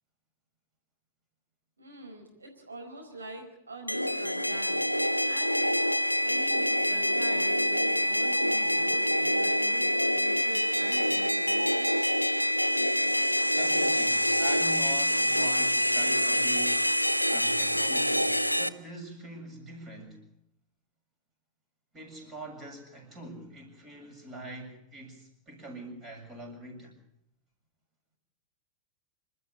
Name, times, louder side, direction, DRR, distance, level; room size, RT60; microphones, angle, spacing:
voice 1, 1.8-4.9 5.2-5.7 6.2-12.0, right 2 dB, 75° right, 1 dB, 4.9 m, -43 dB
sound 1, 3.9-18.7, equal, 90° left, 0.8 m, -26 dB
voice 2, 13.5-16.9 17.3-20.3 21.9-26.9, right 2 dB, 25° right, 3 dB, 7.2 m, -43 dB
27.0 x 13.0 x 8.3 m, 0.76 s
figure-of-eight pair, 90°, 0 cm